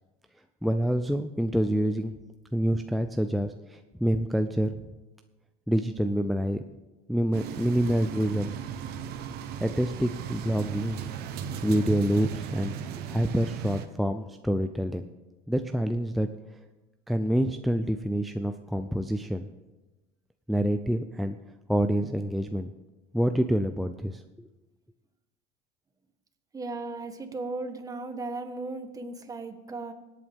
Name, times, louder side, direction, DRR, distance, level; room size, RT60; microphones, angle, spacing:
voice 1, 0.6-2.1 2.5-4.7 5.7-6.6 7.1-8.5 9.6-11.0 11.6-12.7 13.1-15.1 15.5-16.3 17.1-19.5 20.5-21.4 21.7-22.7 23.1-24.5, equal, ahead, 7 dB, 0.4 m, -27 dB
sound 1, 7.3-13.9, right 8 dB, 65° right, 1.0 m, -37 dB
voice 2, 26.5-29.9, right 3 dB, 20° right, 7 dB, 1.4 m, -36 dB
25.0 x 8.4 x 3.6 m, 1.1 s
cardioid pair, 115°, 18 cm